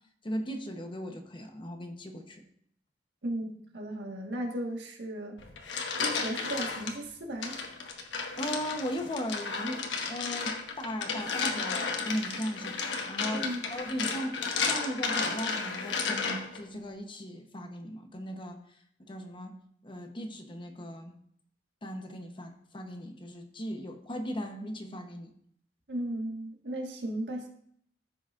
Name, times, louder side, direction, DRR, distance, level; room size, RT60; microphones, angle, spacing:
voice 1, 0.2-2.4 8.4-18.6 19.0-19.6 19.8-21.1 21.8-25.3, equal, 30° left, 5 dB, 0.9 m, -37 dB
voice 2, 3.2-5.4 6.0-7.6 13.3-13.6 25.9-27.5, right 1 dB, 70° right, 1 dB, 1.6 m, -35 dB
domino shuffle, 5.4-6.9 7.4-16.6, left 5 dB, 85° left, 1.2 m, -33 dB
14.0 x 6.0 x 2.5 m, 0.67 s
head